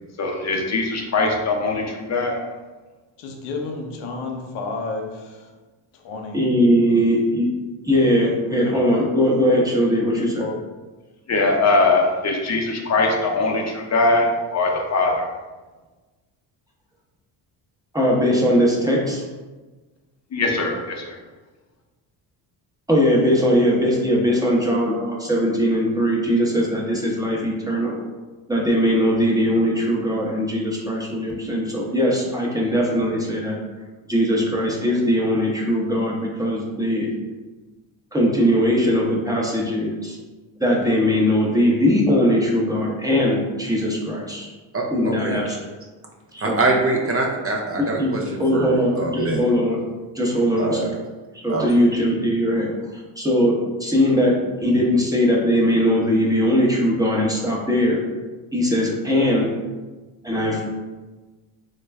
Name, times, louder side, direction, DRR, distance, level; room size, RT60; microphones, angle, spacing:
voice 1, 0.2-2.4 11.3-15.3 20.3-21.2, left 3 dB, 35° left, 1 dB, 0.6 m, -21 dB
voice 2, 3.2-5.5 5.9-6.4 10.1-10.5, left 3 dB, 80° left, 2 dB, 0.7 m, -31 dB
voice 3, 6.3-7.5 7.9-10.5 17.9-19.2 22.9-28.0 28.5-33.5 34.1-37.1 38.1-40.2 40.6-44.5 44.9-45.6 46.3-46.6 47.8-48.1 48.4-49.8 50.1-50.9 51.3-52.7 53.2-54.3 54.6-58.0 58.5-59.5 60.2-60.6, equal, 10° right, -3 dB, 0.8 m, -20 dB
voice 4, 44.7-45.6 46.4-49.4 50.6-50.8 51.5-51.6, right 2 dB, 30° right, 0 dB, 0.5 m, -24 dB
3.1 x 2.2 x 3.3 m, 1.3 s
supercardioid pair, 70°, 48 cm